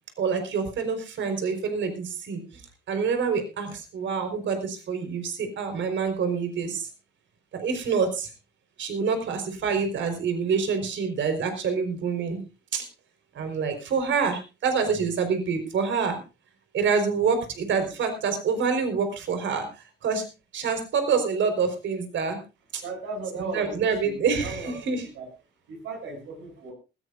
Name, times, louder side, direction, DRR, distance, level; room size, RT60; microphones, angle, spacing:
voice 1, 0.2-2.4 2.9-6.9 7.5-8.3 8.8-12.4 12.7-12.8 13.3-16.2 16.7-19.7 20.0-20.2 20.5-22.4 22.7-22.8 23.4-25.1, right 5 dB, 70° right, 7 dB, 4.8 m, -26 dB
voice 2, 22.8-24.8 25.1-25.3 25.7-26.7, right 3 dB, 90° right, 3 dB, 7.9 m, -36 dB
19.5 x 16.0 x 2.7 m, 0.30 s
cardioid pair, 90°, 20 cm